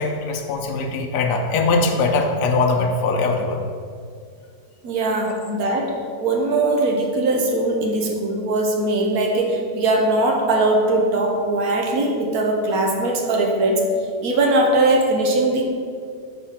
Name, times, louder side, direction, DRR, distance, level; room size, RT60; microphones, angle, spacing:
voice 1, 0.0-3.6 5.5-5.6, left 3 dB, 80° left, 2 dB, 1.2 m, -21 dB
voice 2, 4.8-13.9 14.2-15.6, right 2 dB, 65° right, 1 dB, 1.2 m, -20 dB
4.9 x 4.0 x 5.7 m, 2.3 s
omnidirectional pair, 1.8 m